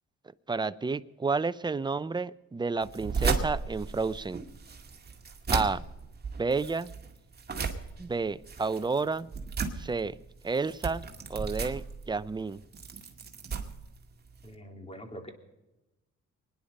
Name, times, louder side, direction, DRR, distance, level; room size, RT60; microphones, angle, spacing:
voice 1, 0.5-4.4 5.5-5.8 6.4-6.9 8.0-9.3 9.8-10.2 10.4-11.0 11.3-12.6, right 4 dB, 15° right, 15 dB, 0.6 m, -30 dB
sound 1, 2.8-14.5, right 5 dB, 35° right, 2.1 m, -35 dB
voice 2, 14.4-15.3, equal, 20° left, 4 dB, 3.2 m, -44 dB
24.0 x 10.5 x 5.3 m, 1.0 s
cardioid pair, 90°, 30 cm